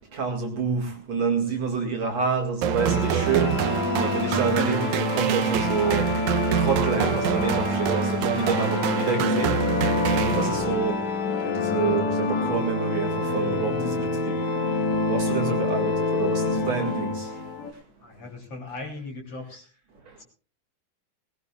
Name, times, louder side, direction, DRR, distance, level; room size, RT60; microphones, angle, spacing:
voice 1, 0.1-6.1 6.6-9.5 9.8-11.0 11.4-14.3 15.1-17.3, right 5 dB, 50° right, 1 dB, 3.0 m, -28 dB
sound 1, 2.6-10.9, right 9 dB, 75° right, 1.8 m, -26 dB
sound 2, 2.8-17.7, left 3 dB, 55° left, 2.6 m, -27 dB
voice 2, 18.0-19.7 20.2-20.3, left 2 dB, 40° left, 0 dB, 4.2 m, -38 dB
20.5 x 19.0 x 2.4 m, 0.38 s
omnidirectional pair, 4.2 m